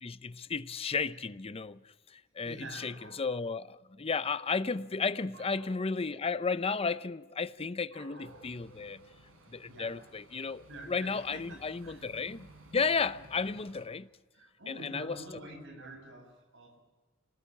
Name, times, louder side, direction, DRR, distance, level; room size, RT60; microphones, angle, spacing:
voice 1, 0.0-1.8 2.1-9.0 9.5-14.1 14.7-15.2, left 4 dB, 30° left, 0.6 m, -33 dB
voice 2, 2.1-3.3 5.3-5.8 7.9-8.5 8.8-8.9 9.7-10.0 10.7-12.1 13.3-13.5 14.3-16.8, right 1 dB, 65° right, 7.2 m, -48 dB
sound 1, 4.1-9.1, right 2 dB, 60° left, 3.7 m, -59 dB
sound 2, 8.2-13.9, right 1 dB, 90° right, 5.5 m, -57 dB
27.5 x 19.0 x 7.2 m
head